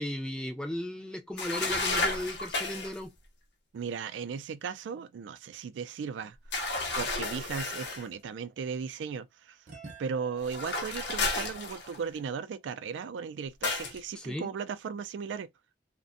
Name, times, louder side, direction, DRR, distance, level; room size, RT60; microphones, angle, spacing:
voice 1, 0.0-3.1 14.2-14.5, left 1 dB, 5° left, 0.3 m, -36 dB
sound 1, 1.4-3.0 6.5-8.1 10.4-12.2 13.6-14.0, left 2 dB, 65° left, 0.6 m, -32 dB
voice 2, 3.7-6.7 7.0-9.6 10.0-15.5, right 6 dB, 85° right, 0.3 m, -36 dB
sound 2, 6.8-8.9 9.7-12.5, right 4 dB, 45° right, 0.7 m, -54 dB
2.5 x 2.1 x 2.5 m
head